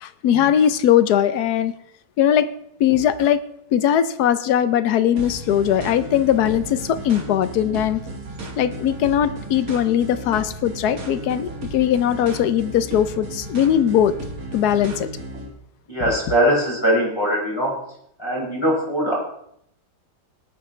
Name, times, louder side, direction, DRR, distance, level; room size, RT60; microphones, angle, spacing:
voice 1, 0.0-1.7 2.2-2.5 2.8-3.4 3.7-8.0 8.6-14.1 14.5-15.1, left 10 dB, 70° left, 13 dB, 1.2 m, -19 dB
sound 1, 5.2-15.5, right 1 dB, 55° right, 2.2 m, -34 dB
voice 2, 15.9-17.7 18.2-19.2, equal, 15° left, -5 dB, 5.4 m, -21 dB
19.0 x 8.9 x 3.2 m, 0.73 s
omnidirectional pair, 1.9 m